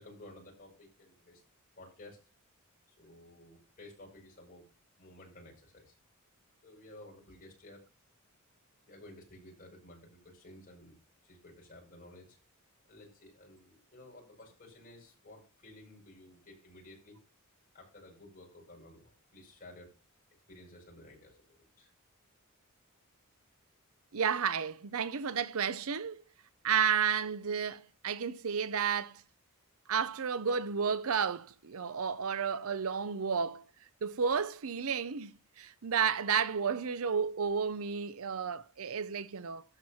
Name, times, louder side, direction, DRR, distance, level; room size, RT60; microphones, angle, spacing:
voice 1, 0.0-1.4 1.8-2.2 3.0-4.7 5.0-6.0 6.6-7.8 8.9-11.0 11.2-12.4 12.8-17.2 17.7-19.9 20.5-21.9, left 1 dB, 40° left, 5.6 m, -54 dB
voice 2, 24.1-26.2 26.6-29.2 29.9-33.6 34.0-39.6, right 6 dB, 70° right, 0.7 m, -32 dB
12.5 x 4.5 x 5.7 m
head